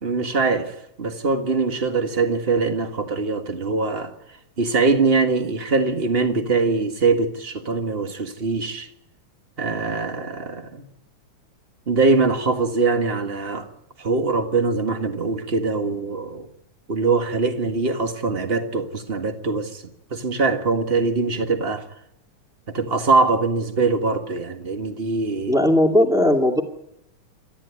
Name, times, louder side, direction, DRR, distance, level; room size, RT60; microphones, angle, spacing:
voice 1, 0.0-4.1 4.6-8.9 9.6-10.8 11.9-13.7 14.0-16.5 16.9-19.8 20.1-21.8 22.7-25.6, right 3 dB, 25° right, 1.3 m, -22 dB
voice 2, 25.5-26.6, left 1 dB, ahead, 1.9 m, -17 dB
27.5 x 13.5 x 9.7 m
omnidirectional pair, 3.5 m